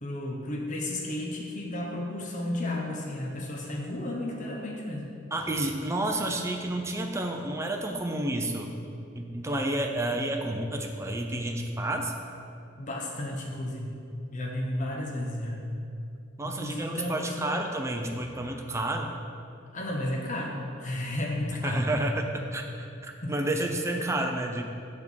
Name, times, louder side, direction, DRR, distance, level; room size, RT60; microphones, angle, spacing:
voice 1, 0.0-5.1 12.8-14.0 14.3-15.6 16.4-17.6 19.7-21.9 23.2-23.3 23.9-24.1, left 1 dB, 40° left, -1 dB, 0.8 m, -33 dB
voice 2, 5.3-8.7 9.1-12.1 16.4-19.1 21.6-24.6, right 1 dB, 15° right, 2 dB, 0.5 m, -30 dB
7.1 x 3.6 x 6.2 m, 2.5 s
head